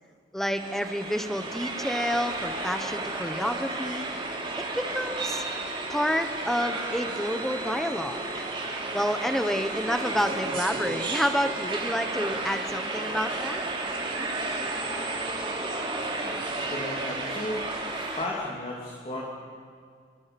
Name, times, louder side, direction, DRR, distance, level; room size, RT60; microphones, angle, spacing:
voice 1, 0.3-4.0 4.6-5.4 5.9-13.6, equal, ahead, 8 dB, 1.1 m, -29 dB
sound 1, 0.6-18.3, right 2 dB, 30° right, 3.4 m, -32 dB
voice 2, 16.6-19.4, left 1 dB, 35° left, -3 dB, 2.9 m, -35 dB
27.0 x 25.0 x 6.1 m, 2.1 s
head